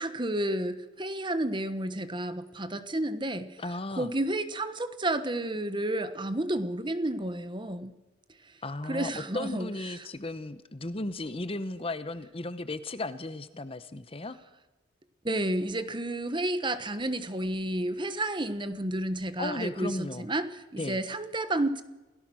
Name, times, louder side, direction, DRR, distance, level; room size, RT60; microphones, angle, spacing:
voice 1, 0.0-3.5 4.0-7.9 8.9-10.0 15.2-21.8, right 1 dB, 25° right, 11 dB, 1.2 m, -31 dB
voice 2, 3.6-4.1 8.6-14.4 19.4-20.3 20.8-21.0, left 2 dB, 30° left, 13 dB, 1.0 m, -35 dB
28.0 x 17.5 x 6.4 m, 1.1 s
head